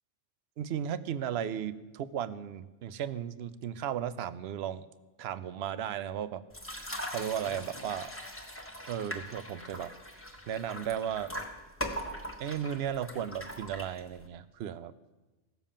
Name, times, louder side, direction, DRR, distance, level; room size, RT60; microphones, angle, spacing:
voice 1, 0.6-4.9 5.2-6.8 7.1-8.1 8.9-9.9 10.5-11.3 12.4-14.9, right 9 dB, 65° right, 15 dB, 0.8 m, -35 dB
sound 1, 6.5-14.3, equal, 10° left, 1.4 m, -41 dB
16.5 x 7.0 x 7.3 m, 1.2 s
omnidirectional pair, 1.3 m